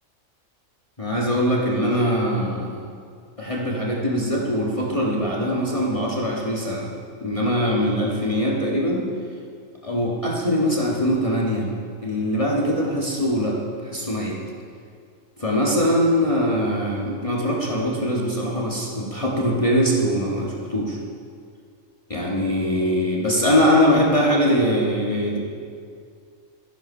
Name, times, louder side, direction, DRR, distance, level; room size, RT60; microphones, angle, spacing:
voice 1, 1.0-2.9 3.4-6.9 7.2-9.0 9.8-11.7 12.0-14.4 15.4-21.0 22.1-25.4, equal, 25° left, -4 dB, 1.6 m, -22 dB
13.5 x 11.5 x 5.5 m, 2.2 s
omnidirectional pair, 1.4 m